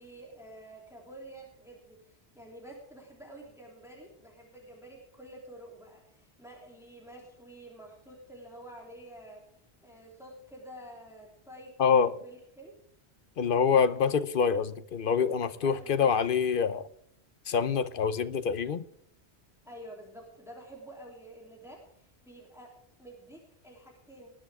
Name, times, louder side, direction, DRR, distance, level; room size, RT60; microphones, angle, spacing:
voice 1, 0.0-9.4 9.8-12.7 15.4-16.2 19.6-22.7 23.0-24.3, right 1 dB, 5° right, 3.1 m, -49 dB
voice 2, 11.8-12.1 13.4-16.9 17.5-18.8, left 6 dB, 55° left, 1.0 m, -26 dB
19.5 x 10.5 x 3.6 m
omnidirectional pair, 1.1 m